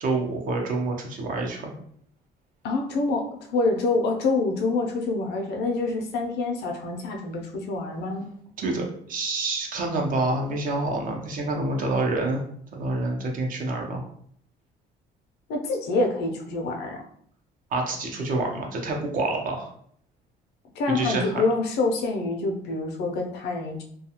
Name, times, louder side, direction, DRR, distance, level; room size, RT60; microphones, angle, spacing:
voice 1, 0.0-1.7 8.6-12.4 12.7-14.1 17.7-19.7 20.9-21.4, right 2 dB, 55° right, 1 dB, 0.7 m, -27 dB
voice 2, 2.6-8.3 15.5-17.0 20.8-23.8, left 3 dB, 75° left, 2 dB, 0.6 m, -26 dB
2.3 x 2.3 x 2.8 m, 0.63 s
cardioid pair, 110°, 17 cm